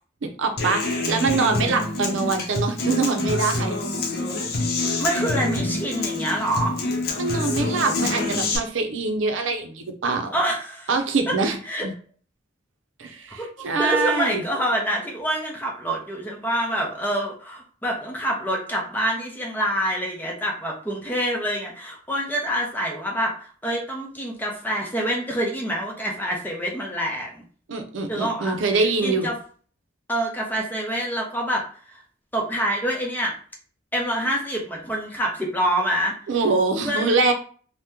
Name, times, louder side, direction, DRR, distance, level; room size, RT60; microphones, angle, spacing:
voice 1, 0.2-3.8 7.2-10.3 10.9-11.6 11.8-11.9 13.0-14.4 27.7-29.3 36.3-37.3, right 4 dB, 90° right, 5 dB, 0.5 m, -24 dB
Human voice / Acoustic guitar, 0.6-8.6, left 2 dB, 55° left, 0.7 m, -26 dB
voice 2, 5.0-6.8 10.3-10.9 11.3-11.4 11.7-11.9 13.4-27.4 28.1-29.3 30.1-32.0 32.3-33.3 33.9-36.2 36.8-37.1, right 1 dB, 10° left, -1 dB, 0.6 m, -26 dB
2.8 x 2.1 x 3.5 m, 0.43 s
head